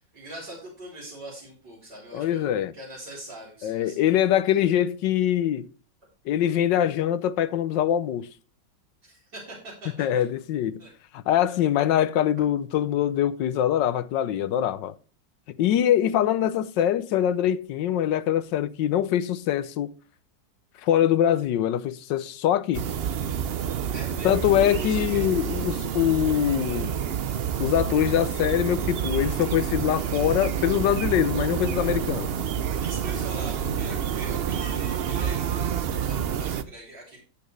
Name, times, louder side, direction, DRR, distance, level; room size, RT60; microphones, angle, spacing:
voice 1, 0.1-4.1 4.5-4.6 9.0-10.2 10.8-10.9 23.9-25.3 32.8-37.2, right 1 dB, 65° right, 4.8 m, -42 dB
voice 2, 2.1-2.7 3.6-5.7 6.3-8.3 10.0-10.8 11.1-14.9 15.6-19.9 20.8-22.8 24.2-27.0 27.6-32.3, left 11 dB, 80° left, 1.4 m, -23 dB
sound 1, 22.7-36.6, right 8 dB, 85° right, 0.5 m, -28 dB
13.5 x 8.7 x 3.2 m
omnidirectional pair, 1.9 m